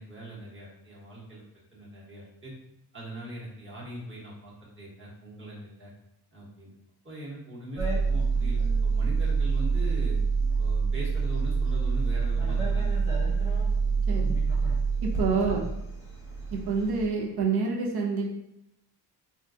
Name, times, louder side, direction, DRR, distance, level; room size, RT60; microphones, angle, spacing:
voice 1, 0.0-1.4 1.7-2.5 2.9-5.9 6.3-6.7 7.0-10.2 10.6-13.5 13.9-14.0 15.4-15.6, right 1 dB, 30° right, -6 dB, 1.1 m, -41 dB
sound 1, 7.8-17.1, right 4 dB, 5° right, 1.0 m, -26 dB
voice 2, 15.0-15.6 16.5-18.3, right 4 dB, 65° right, -1 dB, 0.8 m, -27 dB
3.7 x 2.3 x 2.7 m, 0.85 s
cardioid pair, 120°, 41 cm